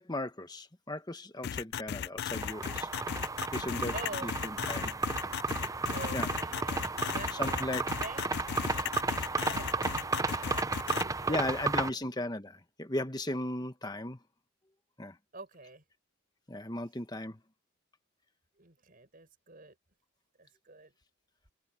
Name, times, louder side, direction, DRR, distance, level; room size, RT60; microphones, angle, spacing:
voice 1, 0.0-2.9 3.5-3.9 4.2-5.0 6.1-6.3 7.3-7.8 11.3-14.2 15.0-15.2 16.5-17.4, left 1 dB, 20° left, 1.3 m, -36 dB
sound 1, 1.4-11.0, left 9 dB, 50° left, 0.3 m, -36 dB
sound 2, 2.3-11.9, right 3 dB, 15° right, 0.6 m, -33 dB
voice 2, 3.9-4.3 5.9-7.7 8.0-8.2 8.7-12.0 15.3-15.8 18.6-19.7 20.4-20.9, right 3 dB, 45° right, 5.1 m, -47 dB
head